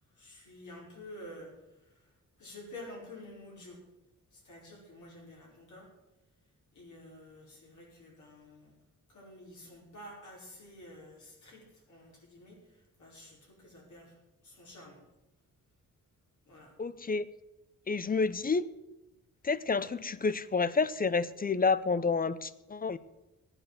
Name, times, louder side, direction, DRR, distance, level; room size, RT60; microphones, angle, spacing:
voice 1, 0.1-3.8 4.3-5.9 6.7-8.8 9.1-15.0 16.5-16.7, left 1 dB, 65° left, -3 dB, 5.1 m, -50 dB
voice 2, 16.8-17.3 17.9-18.6 19.4-23.0, left 4 dB, 30° left, 16 dB, 0.5 m, -29 dB
13.5 x 8.9 x 7.6 m, 0.96 s
wide cardioid pair, 125°, 32 cm